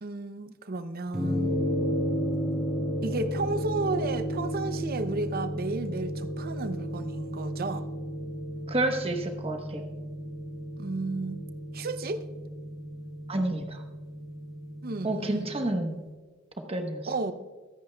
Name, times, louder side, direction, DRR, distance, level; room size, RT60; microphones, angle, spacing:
voice 1, 0.0-1.6 3.0-7.9 10.8-11.4 11.7-12.3 14.8-15.5 17.1-17.5, right 3 dB, 45° right, 11 dB, 0.6 m, -33 dB
sound 1, 1.1-15.7, equal, 5° right, 2.4 m, -33 dB
voice 2, 8.7-9.8 13.3-13.8 15.0-16.0 16.7-17.0, right 1 dB, 30° right, 4 dB, 1.1 m, -29 dB
24.0 x 9.1 x 2.3 m, 1.3 s
head